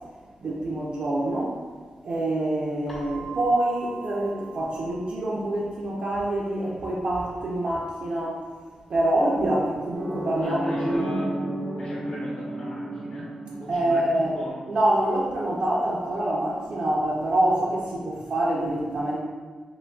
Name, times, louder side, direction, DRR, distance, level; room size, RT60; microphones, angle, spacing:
voice 1, 0.4-1.6 2.0-8.4 8.9-11.1 13.7-14.3 14.7-19.2, right 1 dB, 50° right, -4 dB, 0.4 m, -26 dB
Keyboard (musical), 2.9-5.6, right 5 dB, 10° left, 0.5 m, -42 dB
sound 1, 9.9-14.7, right 1 dB, 75° right, 0.8 m, -33 dB
voice 2, 10.4-11.4 11.8-14.6, equal, 55° left, -7 dB, 0.9 m, -39 dB
3.8 x 2.7 x 2.2 m, 1.5 s
wide cardioid pair, 165°, 2 cm